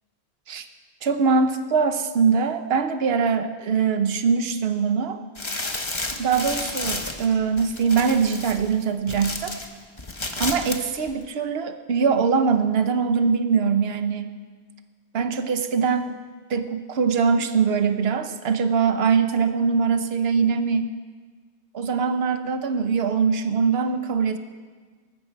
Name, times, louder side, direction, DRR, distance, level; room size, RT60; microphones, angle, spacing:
voice 1, 1.0-5.2 6.2-9.5 10.4-14.3 15.1-16.1 16.5-20.9 21.7-24.4, right 5 dB, 65° right, 8 dB, 1.1 m, -22 dB
sound 1, 5.4-9.7 10.0-10.8 11.1-11.2, left 2 dB, 25° left, 1.1 m, -31 dB
19.0 x 14.5 x 4.7 m, 1.5 s
omnidirectional pair, 1.1 m